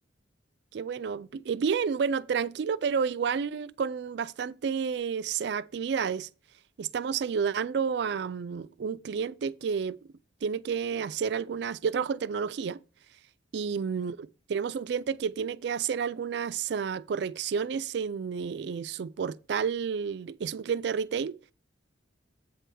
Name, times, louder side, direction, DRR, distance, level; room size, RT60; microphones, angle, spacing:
voice 1, 0.7-6.3 6.8-10.0 10.4-12.8 13.5-21.4, right 6 dB, 60° right, 0.3 m, -30 dB
8.3 x 3.4 x 6.1 m
head